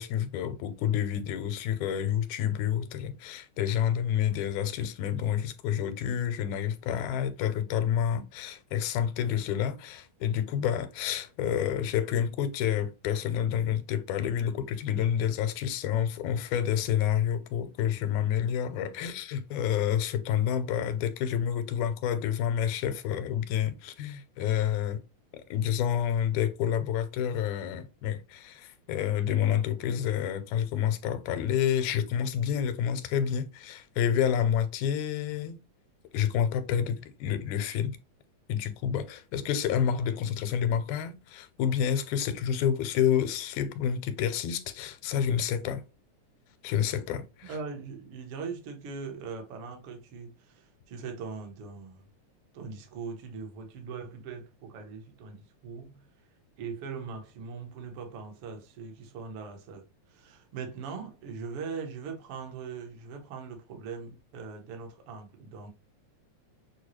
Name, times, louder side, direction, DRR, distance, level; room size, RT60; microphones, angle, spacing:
voice 1, 0.0-25.0 25.5-35.6 36.1-38.0 38.5-45.8 46.6-47.5, left 9 dB, 85° left, 2.0 m, -29 dB
voice 2, 47.4-52.1 52.5-56.0 56.6-65.7, right 5 dB, 60° right, 1.6 m, -41 dB
6.6 x 2.3 x 3.0 m
omnidirectional pair, 3.4 m